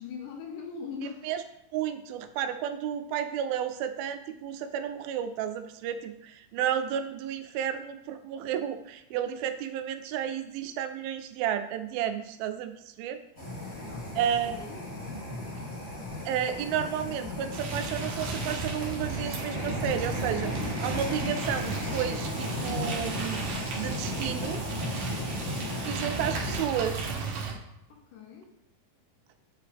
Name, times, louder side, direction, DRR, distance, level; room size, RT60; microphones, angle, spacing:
voice 1, 0.0-1.2 13.7-14.8 27.9-28.5, left 5 dB, 75° left, 2 dB, 2.2 m, -41 dB
voice 2, 1.7-13.2 14.2-14.6 16.3-20.5 20.8-24.6 25.8-27.1, right 9 dB, 90° right, 8 dB, 2.4 m, -32 dB
sound 1, 13.4-26.6, left 1 dB, 30° left, 1.7 m, -35 dB
sound 2, 17.5-27.5, right 4 dB, 60° right, 1.7 m, -35 dB
7.5 x 4.8 x 3.5 m, 0.82 s
omnidirectional pair, 4.2 m